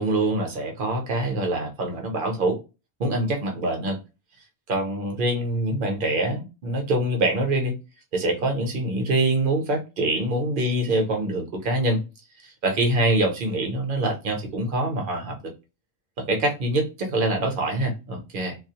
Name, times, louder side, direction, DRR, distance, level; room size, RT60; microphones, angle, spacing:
voice 1, 0.0-2.6 3.0-4.0 4.7-7.8 8.1-12.0 12.4-15.5 16.2-18.6, right 2 dB, 55° right, 0.8 m, -25 dB
2.3 x 2.0 x 2.7 m
omnidirectional pair, 1.2 m